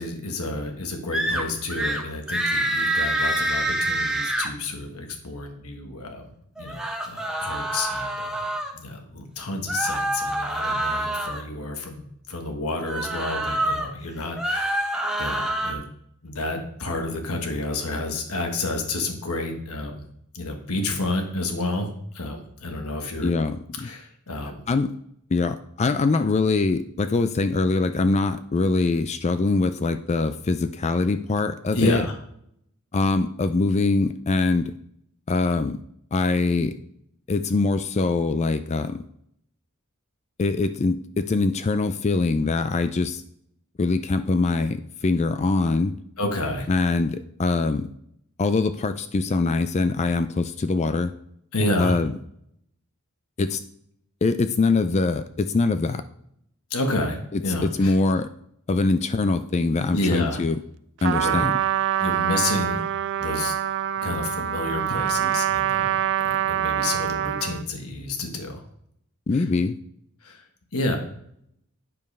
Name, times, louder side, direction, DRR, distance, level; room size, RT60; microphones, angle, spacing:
voice 1, 0.0-6.3 6.6-8.4 8.7-15.9 16.2-20.1 20.3-21.9 22.1-23.3 23.8-24.6 31.7-32.1 46.2-46.7 51.5-52.0 56.7-57.9 59.9-60.4 61.2-61.5 62.0-62.8 63.2-63.5 64.0-65.9 66.5-68.6 69.3-69.5 70.2-70.4 70.7-71.0, left 2 dB, 75° left, 4 dB, 1.4 m, -30 dB
sound 1, 1.1-1.4 1.7-2.0 2.3-4.5 6.6-8.7 9.7-11.4 12.8-13.9 14.3-15.7, right 1 dB, 5° right, 1.1 m, -26 dB
voice 2, 23.2-23.9 24.7-24.9 25.3-32.1 32.9-34.7 35.3-35.8 36.1-36.7 37.3-39.0 40.4-43.2 43.8-45.9 46.7-47.9 48.4-51.1 51.8-52.1 53.4-53.6 54.2-56.0 57.3-58.3 58.7-60.6 61.0-61.6 69.3-69.8, left 3 dB, 30° left, 11 dB, 0.4 m, -23 dB
Trumpet, 61.0-67.6, right 11 dB, 55° right, 0.3 m, -25 dB
9.3 x 5.2 x 5.4 m, 0.71 s
head